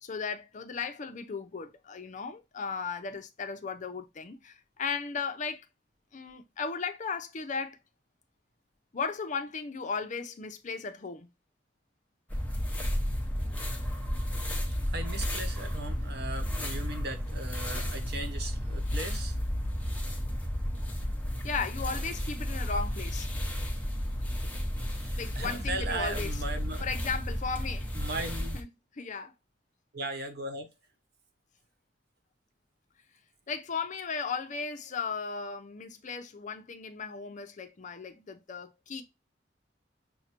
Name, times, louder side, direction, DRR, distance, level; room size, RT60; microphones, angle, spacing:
voice 1, 0.0-5.7 6.1-7.8 8.9-11.3 20.3-20.4 21.4-23.3 25.2-26.3 26.8-27.9 28.5-28.7 29.0-29.3 33.5-39.0, left 5 dB, 45° left, 0.6 m, -36 dB
sound 1, 12.3-28.6, equal, 10° left, 0.9 m, -33 dB
voice 2, 14.9-19.3 24.9-26.9 27.9-28.6 29.9-30.7, right 2 dB, 65° right, 1.0 m, -38 dB
6.1 x 2.1 x 2.9 m
head